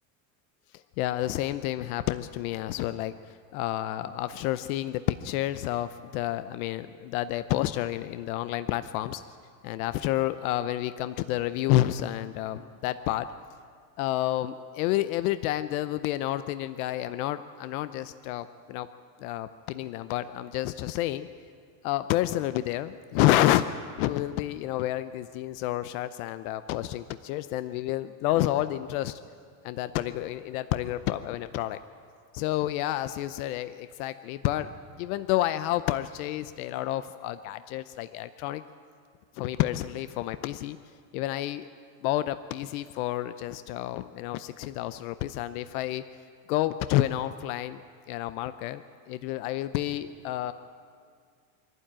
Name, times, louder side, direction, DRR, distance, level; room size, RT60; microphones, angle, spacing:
voice 1, 1.0-9.2 9.6-13.3 14.0-18.9 19.2-21.3 21.8-23.7 24.0-29.2 29.6-31.8 32.3-34.7 35.0-38.6 39.3-40.8 41.1-41.7 42.0-46.0 46.5-47.8 48.1-50.5, left 14 dB, 75° left, 12 dB, 0.7 m, -29 dB
24.0 x 12.5 x 8.8 m, 2.1 s
cardioid pair, 155°, 43 cm